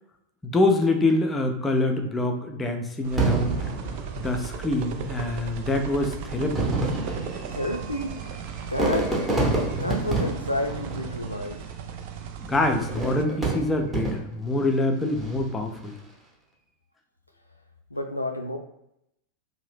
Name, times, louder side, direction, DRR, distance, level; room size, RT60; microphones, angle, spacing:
voice 1, 0.4-3.7 4.2-6.7 12.4-16.0, left 2 dB, 15° left, 4 dB, 0.4 m, -25 dB
sound 1, 3.0-13.3, right 7 dB, 45° right, 0.3 m, -37 dB
Fireworks, 3.2-4.8 5.6-5.7 6.4-11.7 12.8-14.5 15.1-15.6, right 2 dB, 10° right, 0.8 m, -28 dB
voice 2, 7.5-8.1 8.7-9.1 9.8-11.6 17.9-18.6, left 1 dB, 85° left, 4 dB, 0.4 m, -30 dB
2.6 x 2.0 x 3.3 m, 0.80 s
figure-of-eight pair, 90°, 0 cm